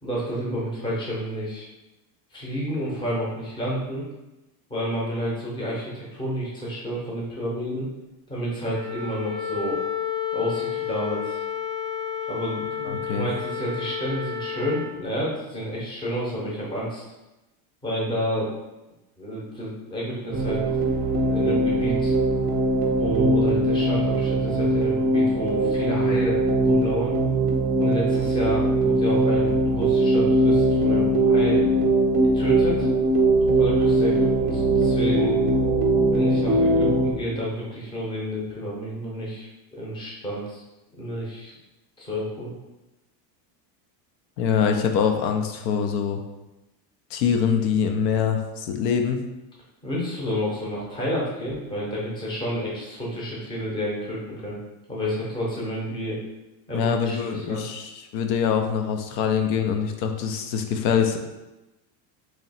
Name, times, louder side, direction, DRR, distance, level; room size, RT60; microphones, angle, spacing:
voice 1, 0.0-1.7 2.3-4.0 4.7-7.9 8.3-9.8 10.3-11.4 12.3-17.0 17.8-18.5 19.2-20.6 21.3-22.1 23.0-27.2 27.8-31.7 32.3-32.9 33.5-35.4 36.1-40.6 40.9-41.5 42.0-42.5 49.8-54.6 54.9-56.2 56.7-57.7, equal, 10° left, -5 dB, 0.7 m, -30 dB
Wind instrument woodwind instrument, 8.6-14.9, left 7 dB, 60° left, 0.9 m, -31 dB
voice 2, 12.8-13.3 44.4-46.2 47.1-49.2 56.7-61.2, left 7 dB, 75° left, 5 dB, 0.6 m, -24 dB
sound 1, 20.3-37.1, right 1 dB, 30° right, 0.3 m, -21 dB
3.1 x 2.8 x 4.1 m, 1.0 s
cardioid pair, 160°, 49 cm